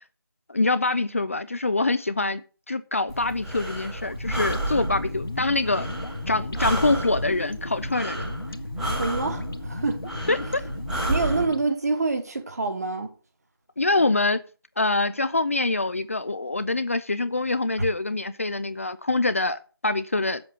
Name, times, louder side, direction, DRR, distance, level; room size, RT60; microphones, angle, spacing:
voice 1, 0.5-2.4 2.7-5.9 6.3-8.3 10.3-10.6 13.8-14.4 14.8-20.4, left 2 dB, 35° left, 0.5 m, -25 dB
Breathing, 3.1-11.4, right 1 dB, ahead, 1.3 m, -31 dB
sound 1, 4.0-11.7, left 2 dB, 70° left, 1.8 m, -35 dB
voice 2, 9.0-10.3 11.1-13.1, right 3 dB, 45° right, 2.0 m, -27 dB
7.6 x 7.4 x 7.9 m
figure-of-eight pair, 170°, 12 cm